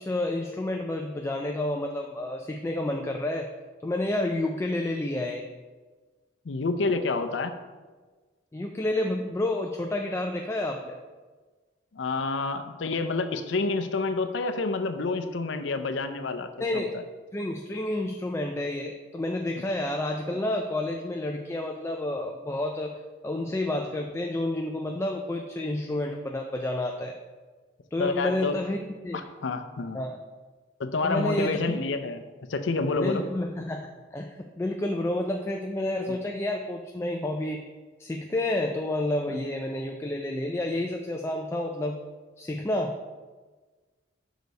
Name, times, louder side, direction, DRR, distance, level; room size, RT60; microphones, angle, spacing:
voice 1, 0.0-3.5 3.8-5.5 8.5-11.0 16.6-16.9 17.3-23.0 23.2-27.2 27.9-29.2 29.9-30.2 31.0-31.8 33.0-37.6 38.0-42.0 42.4-43.0, left 1 dB, 15° left, 2 dB, 0.3 m, -30 dB
voice 2, 6.5-7.5 11.9-17.0 28.0-28.6 29.4-30.0 30.8-32.2 32.5-33.2 39.3-39.4, left 3 dB, 75° left, 9 dB, 0.5 m, -28 dB
6.5 x 4.0 x 5.2 m, 1.3 s
head